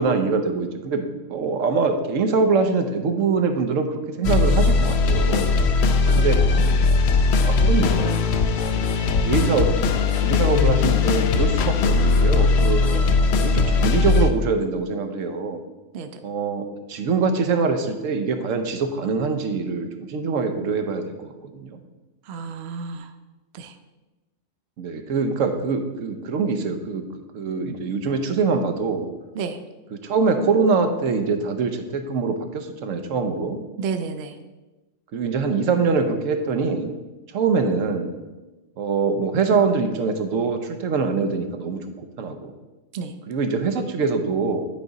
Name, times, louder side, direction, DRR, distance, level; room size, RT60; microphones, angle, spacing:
voice 1, 0.0-5.5 6.1-6.4 7.4-8.2 8.7-12.8 13.4-15.6 16.2-21.8 24.8-27.0 27.3-29.1 29.9-33.6 35.1-36.9 37.3-38.1 38.8-42.5 43.3-44.6, right 4 dB, 80° right, 6 dB, 1.1 m, -24 dB
sound 1, 4.2-14.3, left 4 dB, 65° left, 0.8 m, -19 dB
voice 2, 5.9-6.2 6.5-6.6 12.9-13.1 15.9-16.1 22.3-23.1 23.5-23.7 29.4-29.6 33.8-34.3 42.9-43.1, right 5 dB, 60° right, 8 dB, 0.8 m, -31 dB
10.5 x 4.8 x 4.0 m, 1.1 s
omnidirectional pair, 1.3 m